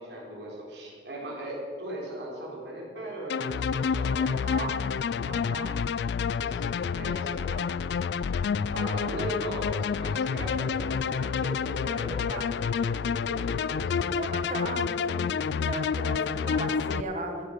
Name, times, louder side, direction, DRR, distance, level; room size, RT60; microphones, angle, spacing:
voice 1, 0.0-4.3 6.4-6.6 6.9-7.6 8.0-8.1 8.7-14.1, right 1 dB, 70° right, -3 dB, 3.7 m, -38 dB
sound 1, 3.3-17.0, left 6 dB, 65° left, 0.3 m, -29 dB
voice 2, 4.3-4.8 5.2-5.8 12.3-12.4 14.1-17.5, right 2 dB, 45° right, 3 dB, 1.5 m, -36 dB
14.5 x 9.7 x 5.2 m, 2.4 s
head